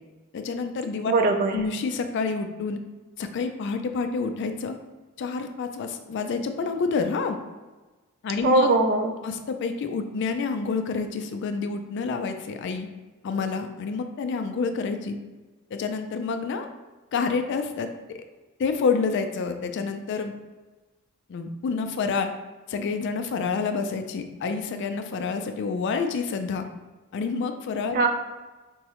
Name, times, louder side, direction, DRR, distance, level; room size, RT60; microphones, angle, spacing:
voice 1, 0.3-1.1 1.5-2.8 3.2-4.8 5.2-7.4 8.2-8.7 9.2-12.9 13.2-15.2 15.7-16.7 17.1-18.2 18.6-20.3 21.3-22.3 22.7-26.7 27.1-28.1, left 4 dB, 55° left, 7 dB, 0.3 m, -28 dB
voice 2, 1.1-1.6 8.4-9.1 27.9-28.1, right 2 dB, 45° right, 4 dB, 0.3 m, -21 dB
4.5 x 2.0 x 2.9 m, 1.2 s
head